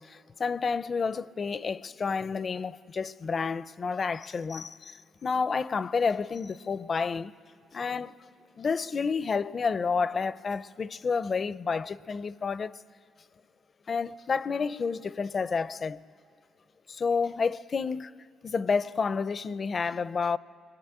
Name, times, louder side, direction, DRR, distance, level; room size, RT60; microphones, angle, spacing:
voice 1, 0.0-7.3 7.7-8.2 8.6-12.8 13.9-16.0 16.9-18.1 18.4-20.4, left 5 dB, 40° left, 0.6 m, -30 dB
29.5 x 21.5 x 8.9 m
cardioid pair, 90°, 0 cm